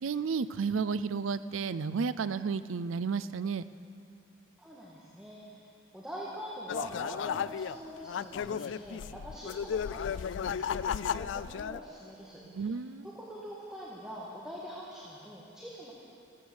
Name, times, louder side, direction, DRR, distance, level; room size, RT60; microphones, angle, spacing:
voice 1, 0.0-3.6 12.5-13.1, right 5 dB, 90° right, 14 dB, 0.5 m, -32 dB
voice 2, 4.6-12.7 13.0-15.9, equal, 5° right, -6 dB, 1.7 m, -44 dB
sound 1, 6.7-11.8, left 7 dB, 70° left, 0.3 m, -34 dB
14.5 x 14.0 x 7.0 m, 2.6 s
head